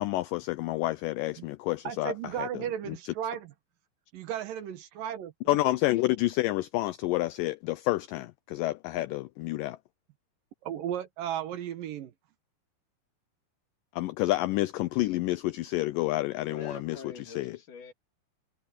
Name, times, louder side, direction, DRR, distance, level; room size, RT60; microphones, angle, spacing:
voice 1, 0.0-2.1 2.4-2.5 2.9-3.0 5.5-9.8 14.0-17.0 17.4-17.5, left 17 dB, 85° left, 1.9 m, -29 dB
voice 2, 1.8-3.5 4.1-5.6 10.6-12.1, right 10 dB, 70° right, 2.7 m, -35 dB
voice 3, 16.5-17.9, left 4 dB, 55° left, 4.2 m, -45 dB
omnidirectional pair, 4.4 m